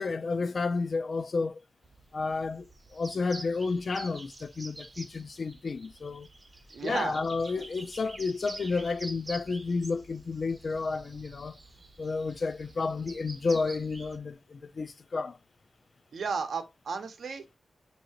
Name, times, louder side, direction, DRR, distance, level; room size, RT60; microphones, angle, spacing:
voice 1, 0.0-1.6 2.1-6.3 6.8-11.6 12.0-15.4, left 4 dB, 55° left, 0.3 m, -31 dB
sound 1, 1.8-14.2, right 2 dB, 30° right, 0.6 m, -48 dB
voice 2, 6.7-7.2 16.1-17.6, right 5 dB, 85° right, 0.7 m, -34 dB
5.5 x 2.7 x 2.8 m
wide cardioid pair, 115°, 0 cm